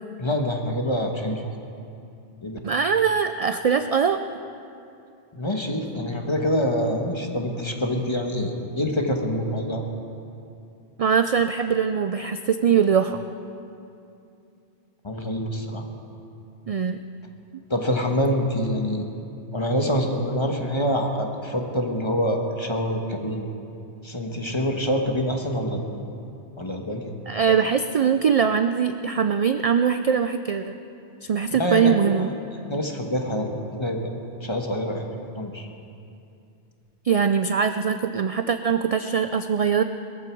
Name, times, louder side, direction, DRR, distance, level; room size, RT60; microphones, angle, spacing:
voice 1, 0.2-1.4 2.4-2.6 5.3-9.8 15.0-15.9 17.7-19.0 19.5-23.4 24.0-25.8 26.6-27.1 31.5-32.3 32.7-34.1 34.4-35.0 35.3-35.7, equal, 25° left, 2 dB, 1.4 m, -26 dB
voice 2, 2.6-4.2 11.0-13.2 16.7-17.0 27.3-30.8 31.2-32.3 37.0-39.8, right 7 dB, 60° right, 9 dB, 0.4 m, -22 dB
21.0 x 14.5 x 4.6 m, 2.6 s
omnidirectional pair, 1.1 m